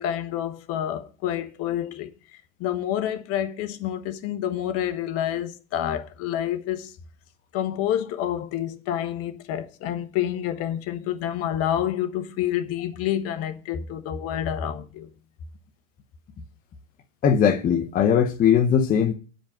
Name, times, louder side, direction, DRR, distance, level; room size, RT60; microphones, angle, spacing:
voice 1, 0.0-6.9 7.5-15.1, left 11 dB, 40° left, 1.1 m, -28 dB
voice 2, 17.2-19.1, left 8 dB, 20° left, 0.8 m, -19 dB
8.4 x 5.2 x 7.7 m
supercardioid pair, 130°, 39 cm